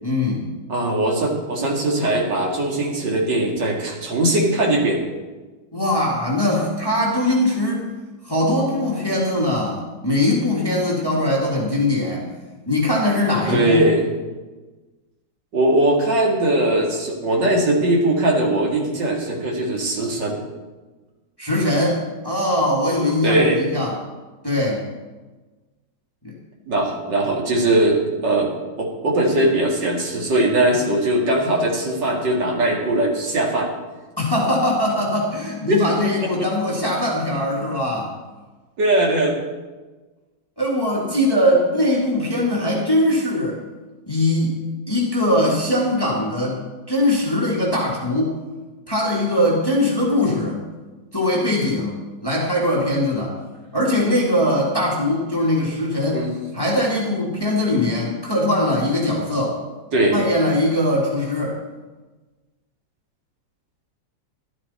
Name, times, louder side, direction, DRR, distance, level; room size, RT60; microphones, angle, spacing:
voice 1, 0.0-0.5 5.7-7.9 8.2-12.3 12.7-13.9 21.4-22.0 22.2-23.9 24.4-24.8 26.2-26.3 34.2-38.1 40.6-43.6 44.1-44.5 44.9-46.6 46.9-48.4 48.9-50.6 51.1-51.9 52.2-53.4 53.7-56.2 56.5-59.6 60.1-61.6, left 1 dB, 10° left, -4 dB, 2.0 m, -21 dB
voice 2, 0.7-5.0 13.5-14.0 15.5-20.4 23.2-23.6 26.7-28.5 28.8-33.7 35.7-35.8 36.2-36.5 38.8-39.3 56.1-56.3 59.9-60.2, right 1 dB, 70° right, -1 dB, 2.7 m, -20 dB
12.0 x 12.0 x 4.2 m, 1.3 s
omnidirectional pair, 2.0 m